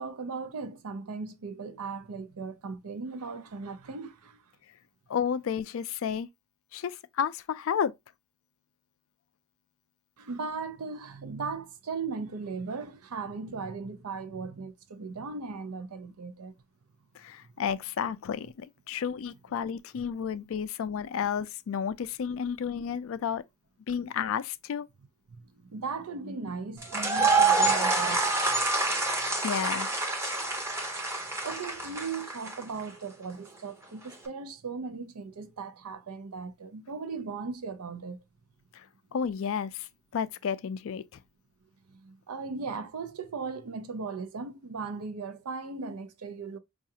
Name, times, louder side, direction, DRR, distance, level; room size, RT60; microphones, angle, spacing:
voice 1, 0.0-4.4 10.2-16.5 25.3-28.6 31.4-38.2 42.0-46.6, right 4 dB, 85° right, 0.6 m, -38 dB
voice 2, 5.1-6.3 6.7-7.9 17.1-23.4 23.9-24.9 29.3-29.9 38.7-38.9 39.1-41.2, left 7 dB, 60° left, 0.3 m, -32 dB
sound 1, 26.8-32.8, right 3 dB, 10° right, 0.6 m, -27 dB
4.7 x 2.4 x 2.7 m
head